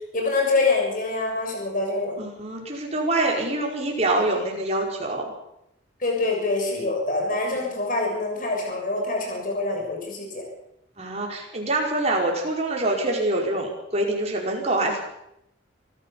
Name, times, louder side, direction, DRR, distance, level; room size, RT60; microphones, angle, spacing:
voice 1, 0.1-2.2 6.0-10.4, left 3 dB, 45° left, 1 dB, 6.5 m, -25 dB
voice 2, 2.2-5.3 7.6-7.7 11.0-15.0, right 2 dB, 35° right, 0 dB, 5.1 m, -25 dB
25.0 x 15.0 x 7.3 m, 0.80 s
head